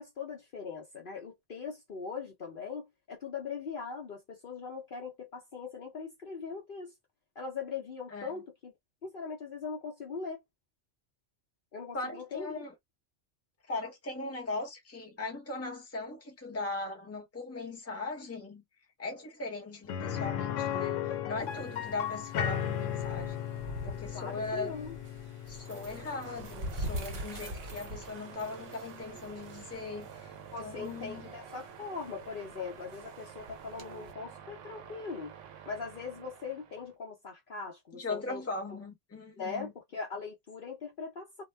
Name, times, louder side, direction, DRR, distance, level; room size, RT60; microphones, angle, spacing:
voice 1, 0.0-6.9 7.4-8.7 9.0-10.4 11.7-12.6 24.1-25.0 30.5-35.3 35.7-38.4 39.4-41.4, left 5 dB, 50° left, 0.8 m, -40 dB
voice 2, 8.1-8.4 11.9-12.7 13.7-18.6 19.0-23.5 23.8-24.8 25.5-30.3 30.6-31.3 37.9-39.7, left 3 dB, 15° left, 0.8 m, -39 dB
sound 1, 19.9-29.7 30.0-30.1 32.5-32.6, left 9 dB, 85° left, 0.9 m, -37 dB
sound 2, 21.4-34.1, equal, 45° right, 0.8 m, -45 dB
sound 3, 25.4-36.9, right 9 dB, 80° right, 0.9 m, -50 dB
2.2 x 2.2 x 3.2 m
omnidirectional pair, 1.3 m